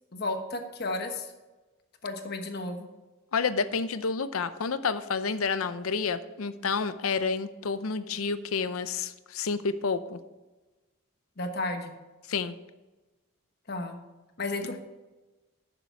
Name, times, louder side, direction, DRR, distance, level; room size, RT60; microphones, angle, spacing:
voice 1, 0.1-1.3 2.0-2.9 11.4-11.9 13.7-14.0 14.4-14.8, left 2 dB, 50° left, 5 dB, 1.2 m, -33 dB
voice 2, 3.3-10.2 12.3-12.5, left 5 dB, 85° left, 13 dB, 0.6 m, -29 dB
10.5 x 6.8 x 4.6 m, 1.2 s
head